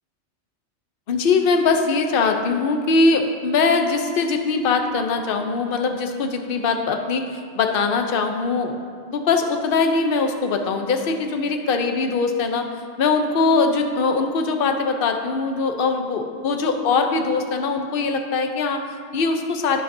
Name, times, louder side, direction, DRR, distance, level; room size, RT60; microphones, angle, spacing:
voice 1, 1.1-8.8 9.1-19.8, left 4 dB, 55° left, 5 dB, 0.9 m, -21 dB
12.0 x 10.5 x 2.7 m, 2.1 s
omnidirectional pair, 1.2 m